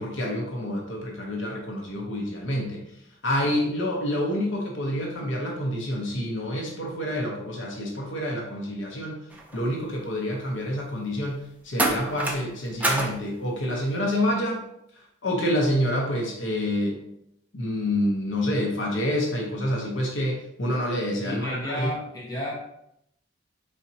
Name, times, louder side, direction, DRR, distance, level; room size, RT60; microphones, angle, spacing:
voice 1, 0.0-2.8 3.2-9.2 9.5-14.6 14.9-17.0 17.5-21.9, left 1 dB, 65° left, -1 dB, 0.8 m, -28 dB
sound 1, 9.3-9.6 11.8-12.5 12.8-13.2 14.1-14.3, right 1 dB, 10° right, 0.4 m, -26 dB
voice 2, 21.2-22.5, left 1 dB, 20° left, -5 dB, 1.0 m, -32 dB
4.1 x 3.6 x 2.7 m, 0.76 s
head